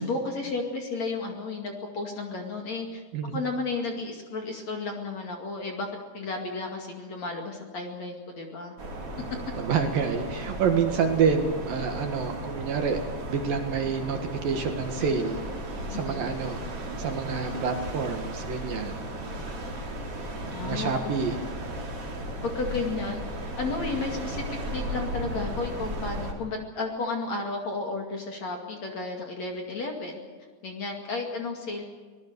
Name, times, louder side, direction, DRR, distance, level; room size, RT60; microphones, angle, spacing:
voice 1, 0.0-3.0 3.3-5.9 6.1-8.8 15.9-16.2 20.5-20.9 22.4-23.2 23.6-30.2 30.6-31.8, left 3 dB, 45° left, 2 dB, 2.9 m, -33 dB
sound 1, 8.8-26.3, right 1 dB, 35° right, 3.8 m, -35 dB
voice 2, 9.6-13.0 13.3-15.4 15.9-16.6 17.0-19.0 20.6-21.4, right 6 dB, 60° right, 5 dB, 3.0 m, -27 dB
25.0 x 19.5 x 6.8 m, 1.5 s
omnidirectional pair, 5.1 m